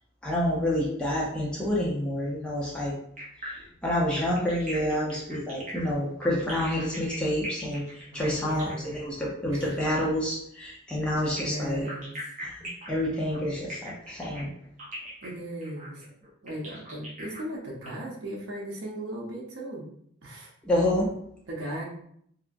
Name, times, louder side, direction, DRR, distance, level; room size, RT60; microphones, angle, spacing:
voice 1, 0.2-2.9 3.4-3.5 3.8-7.8 8.1-11.9 12.4-14.5 20.7-21.1, left 1 dB, 5° left, -5 dB, 0.4 m, -28 dB
sound 1, 3.2-9.9 11.2-17.9, right 1 dB, 40° right, 0.8 m, -41 dB
voice 2, 8.1-9.0 9.5-9.7 11.4-12.1 15.2-16.0 16.4-19.8 20.2-20.5 21.5-21.8, right 1 dB, 80° right, -3 dB, 0.7 m, -37 dB
2.8 x 2.3 x 2.5 m, 0.68 s
head